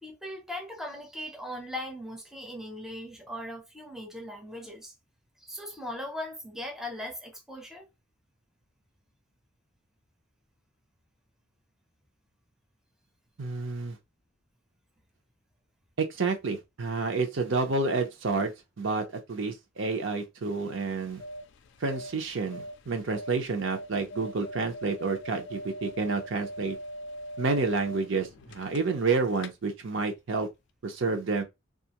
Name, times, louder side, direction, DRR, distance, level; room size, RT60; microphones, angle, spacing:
voice 1, 0.0-4.9 5.4-7.9, left 1 dB, ahead, 0.5 m, -39 dB
voice 2, 13.4-14.0 16.0-21.2 21.8-26.8 27.4-30.5 30.8-31.4, right 4 dB, 65° right, 0.6 m, -29 dB
sound 1, 20.9-29.1 29.4-29.5, equal, 60° left, 0.4 m, -42 dB
2.4 x 2.4 x 2.8 m
head